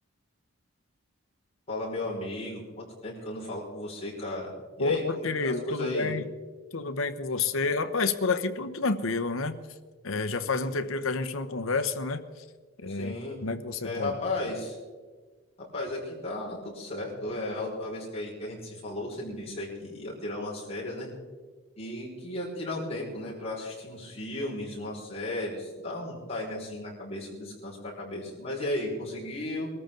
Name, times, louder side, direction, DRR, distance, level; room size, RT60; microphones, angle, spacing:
voice 1, 1.7-6.1 12.9-13.4 13.8-14.8 15.7-21.1 21.8-29.7, left 1 dB, 30° left, -6 dB, 5.5 m, -35 dB
voice 2, 4.8-6.2 6.7-9.6 10.0-12.2 12.8-13.1 13.4-14.1, left 3 dB, 75° left, 8 dB, 1.0 m, -29 dB
22.5 x 14.0 x 3.9 m, 1.4 s
head